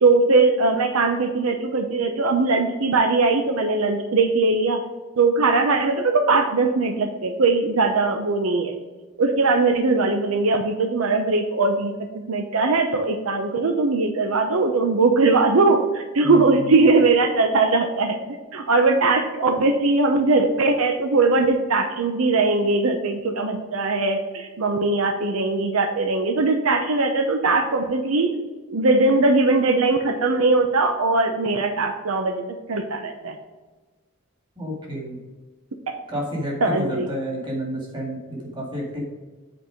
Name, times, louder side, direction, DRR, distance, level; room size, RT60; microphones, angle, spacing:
voice 1, 0.0-4.8 5.2-8.7 9.2-11.9 12.3-18.2 18.5-28.3 28.7-32.4 32.7-33.4 36.6-37.1, right 3 dB, 80° right, 6 dB, 0.7 m, -20 dB
voice 2, 16.2-16.7 34.6-35.2 36.1-39.0, equal, 20° right, -1 dB, 2.0 m, -30 dB
7.9 x 4.5 x 5.0 m, 1.3 s
head